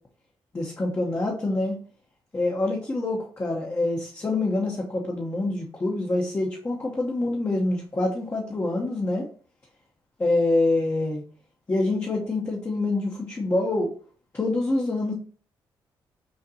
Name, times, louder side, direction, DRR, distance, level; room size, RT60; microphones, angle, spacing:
voice 1, 0.5-1.7 2.3-9.3 10.2-11.2 11.7-13.9 14.3-15.1, left 2 dB, 25° left, -3 dB, 1.1 m, -26 dB
6.4 x 2.5 x 2.9 m, 0.42 s
supercardioid pair, 65°, 9 cm